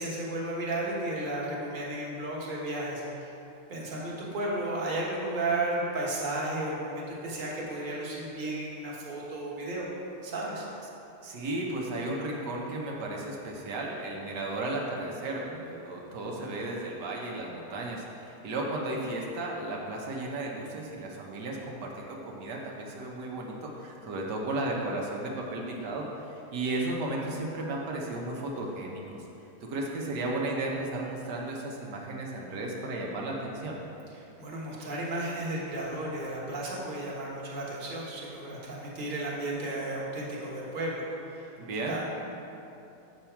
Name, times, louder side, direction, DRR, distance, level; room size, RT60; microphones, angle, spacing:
voice 1, 0.0-3.3 3.7-9.9 10.2-10.6 34.1-41.5 41.9-42.0, right 2 dB, 35° right, -5 dB, 1.2 m, -33 dB
voice 2, 11.2-29.2 29.7-33.8 41.6-42.0, right 2 dB, 75° right, -2 dB, 1.4 m, -34 dB
7.1 x 5.9 x 4.5 m, 2.9 s
omnidirectional pair, 1.8 m